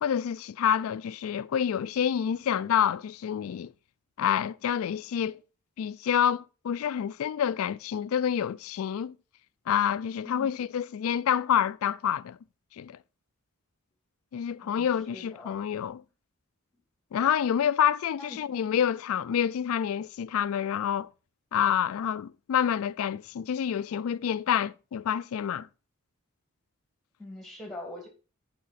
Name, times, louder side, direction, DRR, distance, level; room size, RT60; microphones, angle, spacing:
voice 1, 0.0-3.7 4.2-5.4 5.8-9.2 9.7-12.4 12.8-13.0 14.3-16.0 17.1-21.1 21.5-25.7, left 9 dB, 80° left, 0.3 m, -28 dB
voice 2, 10.2-10.6 14.6-15.6 18.2-18.4 27.2-28.1, left 2 dB, ahead, 2.2 m, -43 dB
10.0 x 4.9 x 4.1 m
head